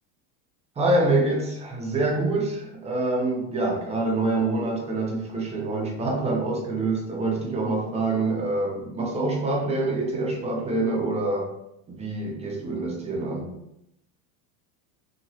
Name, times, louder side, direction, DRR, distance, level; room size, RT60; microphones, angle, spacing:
voice 1, 0.8-11.5 11.9-13.5, right 2 dB, 15° right, 0 dB, 0.5 m, -26 dB
2.9 x 2.8 x 2.7 m, 0.81 s
supercardioid pair, 130°, 43 cm